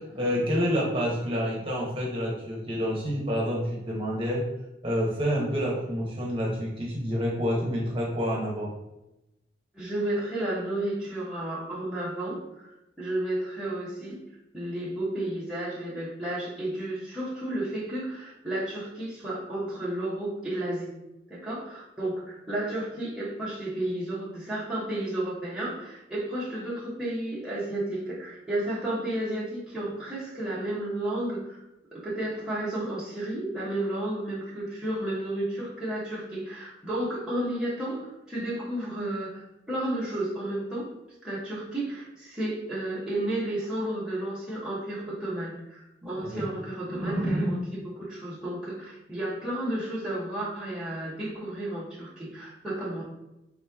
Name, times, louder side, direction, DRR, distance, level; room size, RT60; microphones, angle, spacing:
voice 1, 0.0-4.4 4.8-8.7 46.2-46.5, equal, 30° right, -4 dB, 1.0 m, -28 dB
voice 2, 9.7-12.7 13.0-14.2 14.5-20.9 21.3-31.6 31.9-40.9 41.2-53.0, right 1 dB, 5° right, -9 dB, 1.0 m, -32 dB
3.7 x 3.0 x 3.5 m, 0.91 s
head